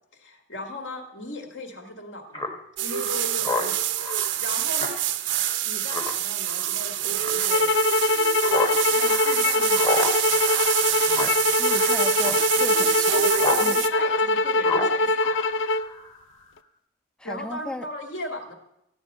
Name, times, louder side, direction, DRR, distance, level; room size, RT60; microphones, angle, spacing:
voice 1, 0.1-2.5 2.8-3.8 4.4-5.0 5.6-7.7 8.9-10.1 13.1-15.3 17.2-18.5, left 1 dB, 70° left, 1.9 m, -37 dB
Speech synthesizer, 2.3-13.7 13.9-16.2, left 2 dB, 25° left, 1.1 m, -33 dB
sound 1, 2.8-13.9, right 11 dB, 70° right, 0.6 m, -26 dB
sound 2, 7.5-15.9, left 2 dB, 90° left, 0.5 m, -23 dB
voice 2, 11.6-13.3 13.6-13.8 17.2-17.9, left 1 dB, 5° left, 0.4 m, -35 dB
14.0 x 9.3 x 5.3 m
head